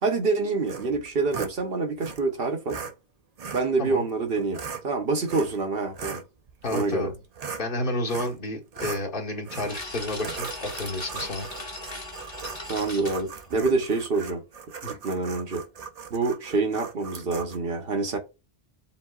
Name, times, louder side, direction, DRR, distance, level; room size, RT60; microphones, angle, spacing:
voice 1, 0.0-2.8 3.5-6.2 6.7-7.1 12.2-12.3 12.7-14.4 14.8-15.6 16.1-18.2, right 3 dB, 65° right, 1.1 m, -26 dB
sound 1, 0.7-1.6 2.0-2.2 2.7-2.9 3.4-3.7 4.3-4.8 5.3-5.6 5.9-7.7 8.1-8.4 8.7-9.1 9.4-9.8 10.2-17.6, right 6 dB, 45° right, 0.6 m, -38 dB
voice 2, 6.6-7.2 7.6-11.5, left 1 dB, 55° left, 1.5 m, -30 dB
sound 2, 9.7-14.0, left 1 dB, 25° left, 1.2 m, -38 dB
7.2 x 2.6 x 2.3 m
omnidirectional pair, 1.1 m